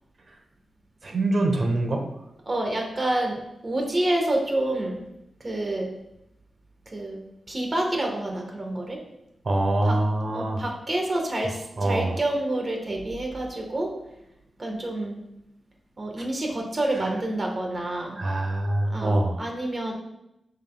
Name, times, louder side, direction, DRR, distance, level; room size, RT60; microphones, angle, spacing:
voice 1, 1.0-2.0 9.4-10.6 11.8-12.2 17.0-17.1 18.2-19.4, right 1 dB, 55° right, 3 dB, 1.2 m, -24 dB
voice 2, 2.5-5.0 5.4-5.9 6.9-7.2 7.5-9.0 9.8-10.0 10.3-13.9 14.6-15.2 16.0-18.2 18.8-19.9, right 1 dB, 35° right, 1 dB, 1.5 m, -28 dB
7.2 x 6.6 x 2.4 m, 0.84 s
wide cardioid pair, 90°, 0 cm